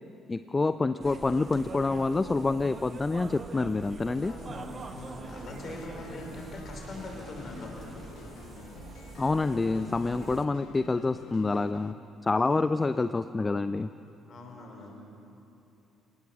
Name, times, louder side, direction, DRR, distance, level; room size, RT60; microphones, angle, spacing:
voice 1, 0.3-4.3 9.2-12.0 12.2-13.9, left 3 dB, 25° left, 13 dB, 0.6 m, -27 dB
sound 1, 1.0-10.5, right 4 dB, 35° right, 1.6 m, -44 dB
sound 2, 3.8-4.5 4.8-11.9, left 11 dB, 60° left, 0.7 m, -50 dB
voice 2, 4.2-8.1 11.4-11.7 12.3-12.9 14.3-15.0, left 2 dB, 45° left, 1 dB, 5.0 m, -43 dB
27.5 x 18.0 x 6.2 m, 2.9 s
figure-of-eight pair, 45°, 0 cm